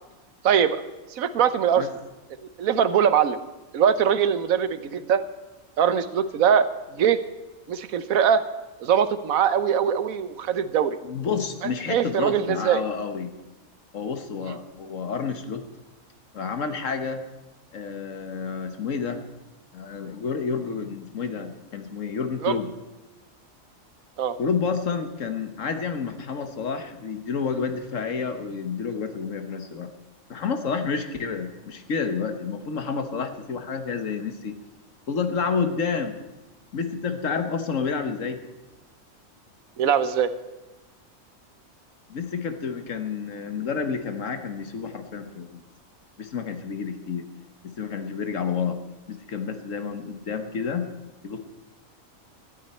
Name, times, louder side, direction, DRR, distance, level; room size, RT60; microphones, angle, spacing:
voice 1, 0.4-0.8 1.1-1.9 2.6-3.4 3.7-5.2 5.8-7.2 7.7-8.4 8.8-11.0 11.9-12.8 14.4-14.6 22.4-22.5 24.2-24.4 39.8-40.3, right 8 dB, 85° right, 12 dB, 1.2 m, -22 dB
voice 2, 11.0-13.3 13.9-15.6 16.3-17.2 17.7-19.2 19.7-22.7 24.4-29.9 30.3-34.6 35.1-36.2 36.7-38.4 42.1-45.6 46.2-47.2 47.6-48.8 49.1-50.9 51.2-51.4, left 5 dB, 65° left, 8 dB, 1.5 m, -29 dB
18.5 x 13.5 x 4.4 m, 1.1 s
omnidirectional pair, 1.4 m